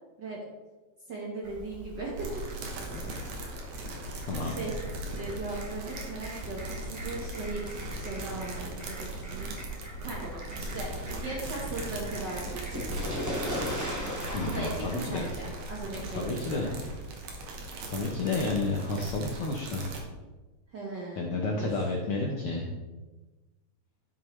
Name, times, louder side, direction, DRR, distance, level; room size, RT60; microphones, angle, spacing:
voice 1, 1.1-2.3 2.5-3.0 4.4-4.7 5.1-9.5 10.0-10.2 10.6-12.9 14.3-16.8 20.7-21.7, right 3 dB, 55° right, -3 dB, 1.3 m, -38 dB
Fowl, 1.4-17.7, equal, 10° right, 1.0 m, -40 dB
sound 1, 2.2-20.0, right 2 dB, 85° right, 2.7 m, -39 dB
voice 2, 4.3-4.6 14.3-15.3 16.1-16.7 17.8-19.8 21.2-22.7, left 3 dB, 70° left, -1 dB, 1.3 m, -31 dB
11.0 x 6.6 x 3.2 m, 1.2 s
omnidirectional pair, 3.5 m